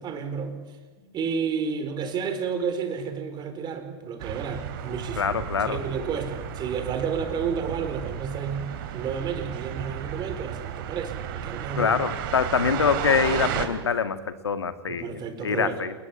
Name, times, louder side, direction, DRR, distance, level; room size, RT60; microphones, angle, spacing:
voice 1, 0.0-5.3 5.6-11.9 14.9-15.8, right 6 dB, 30° right, 8 dB, 4.6 m, -31 dB
sound 1, 4.2-13.7, right 9 dB, 55° right, 3.3 m, -33 dB
voice 2, 5.2-5.8 11.8-15.9, left 6 dB, 80° left, 11 dB, 1.9 m, -25 dB
29.0 x 20.0 x 8.7 m, 1.3 s
figure-of-eight pair, 95°, 14 cm